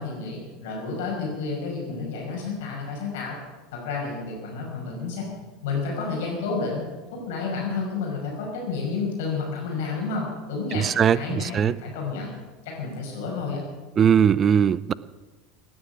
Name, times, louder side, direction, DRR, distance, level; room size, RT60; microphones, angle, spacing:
voice 1, 0.0-3.4 3.7-5.3 5.6-6.8 7.1-10.9 11.1-12.3 12.6-13.6, left 4 dB, 60° left, -1 dB, 5.9 m, -30 dB
voice 2, 10.7-11.7 14.0-14.9, right 8 dB, 30° right, 20 dB, 0.5 m, -20 dB
18.0 x 9.9 x 7.4 m, 1.3 s
figure-of-eight pair, 75°, 0 cm